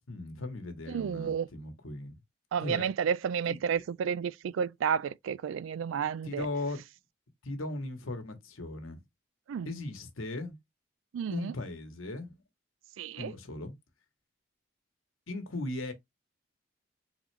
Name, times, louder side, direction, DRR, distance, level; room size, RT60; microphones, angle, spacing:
voice 1, 0.1-2.1 2.6-2.9 3.5-3.6 6.2-6.8 7.4-9.0 9.6-10.6 11.3-12.3 13.2-13.7 15.3-15.9, left 2 dB, 90° left, 1.1 m, -38 dB
voice 2, 0.9-1.5 2.5-6.5 9.5-9.7 11.1-11.5 13.0-13.3, right 7 dB, 75° right, 0.3 m, -31 dB
3.7 x 3.1 x 3.2 m
head